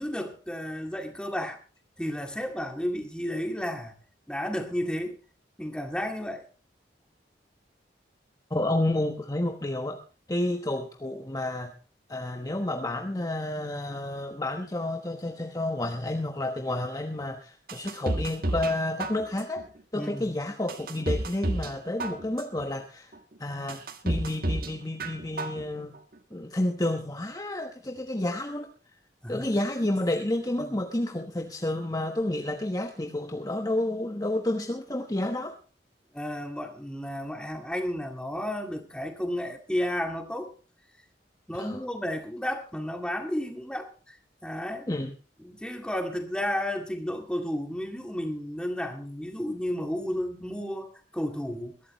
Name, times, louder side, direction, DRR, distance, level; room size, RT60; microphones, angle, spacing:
voice 1, 0.0-1.6 2.0-3.9 4.3-5.2 5.6-6.5 19.9-20.4 29.2-29.5 36.1-40.5 41.5-44.2 44.4-44.9 45.4-51.8, equal, 5° left, 2.1 m, -32 dB
voice 2, 8.5-10.0 10.3-11.7 12.1-19.6 19.9-23.1 23.4-26.0 26.3-28.7 29.3-35.5 41.6-41.8 44.9-45.1, left 1 dB, 20° left, 1.2 m, -30 dB
sound 1, 17.7-18.7 19.0-19.6 20.1-20.2 20.7-21.7 22.0-22.6 23.1-23.2 23.7-24.7 25.0-25.6 25.9-26.0, right 1 dB, 55° right, 1.7 m, -30 dB
22.0 x 12.5 x 3.1 m
head